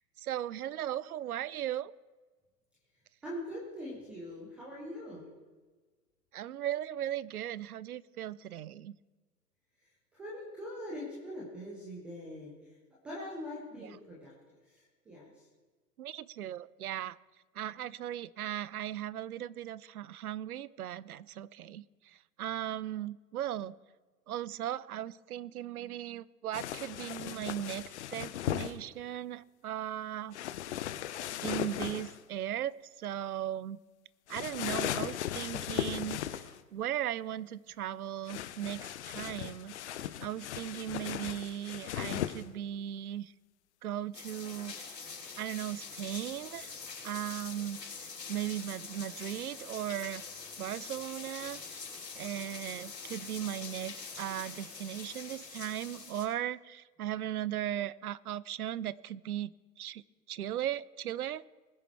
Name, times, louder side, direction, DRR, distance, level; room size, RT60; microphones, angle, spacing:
voice 1, 0.0-1.9 6.3-9.0 13.8-13.9 16.0-17.2 17.5-23.7 24.3-30.4 31.4-33.8 34.3-36.4 36.7-39.8 40.2-43.3 43.8-45.0 45.4-46.7 47.0-47.8 48.3-50.2 50.6-51.6 52.2-60.0 60.3-61.4, right 12 dB, 65° right, 21 dB, 0.6 m, -37 dB
voice 2, 3.2-5.2 10.1-12.5 13.0-14.3 14.7-15.4, left 1 dB, 5° right, -6 dB, 0.4 m, -42 dB
sound 1, 26.5-28.7 30.3-32.2 34.3-36.6 38.3-42.4, left 11 dB, 45° left, 0.7 m, -37 dB
sound 2, 44.1-56.3, left 5 dB, 75° left, 4.1 m, -45 dB
20.5 x 7.0 x 4.6 m, 1.3 s
figure-of-eight pair, 115°, 49 cm